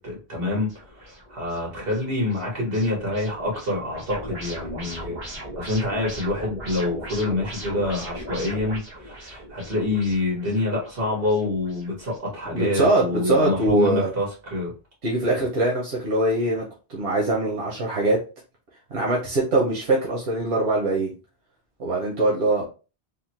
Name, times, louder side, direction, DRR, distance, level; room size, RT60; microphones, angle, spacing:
voice 1, 0.0-5.2 5.5-14.7, left 2 dB, 65° right, 1.7 m, -27 dB
sound 1, 0.7-12.2, right 1 dB, 45° right, 1.3 m, -39 dB
voice 2, 12.5-14.1 15.0-16.6 16.9-18.2 18.9-21.1 21.8-22.6, right 2 dB, 85° right, 1.2 m, -22 dB
3.6 x 2.1 x 2.9 m
omnidirectional pair, 1.1 m